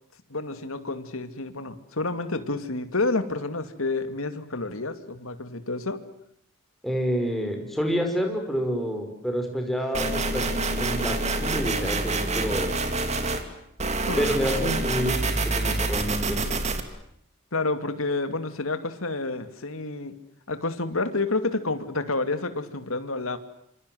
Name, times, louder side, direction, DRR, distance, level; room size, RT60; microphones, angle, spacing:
voice 1, 0.3-6.0 14.1-14.3 17.5-20.2 20.5-23.4, left 3 dB, 75° left, 10 dB, 2.5 m, -29 dB
voice 2, 6.8-12.7 14.2-16.4, equal, ahead, 2 dB, 5.7 m, -28 dB
sound 1, 9.9-13.4 13.8-16.8, right 2 dB, 30° right, 2.9 m, -27 dB
27.5 x 26.5 x 8.0 m, 0.72 s
head